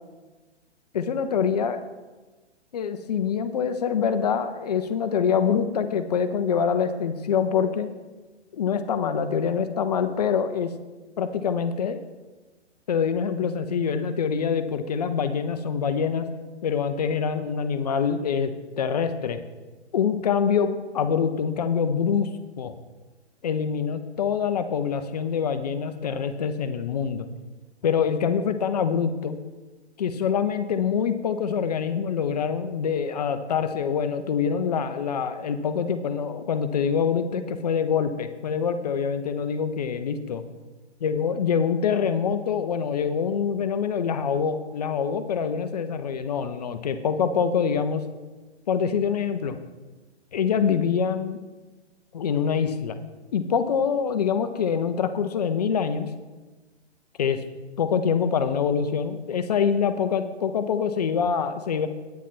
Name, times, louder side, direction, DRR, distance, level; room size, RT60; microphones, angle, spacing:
voice 1, 0.9-1.8 2.7-7.9 8.5-10.7 11.2-12.0 12.9-16.3 16.6-18.5 18.8-19.4 19.9-22.3 22.6-22.7 23.4-27.3 27.8-29.4 30.0-40.4 41.0-48.0 48.7-49.6 50.3-51.4 52.1-53.0 53.3-56.1 57.2-57.4 57.8-61.9, left 7 dB, 35° left, 9 dB, 0.7 m, -25 dB
10.0 x 9.2 x 4.3 m, 1.2 s
figure-of-eight pair, 135°, 34 cm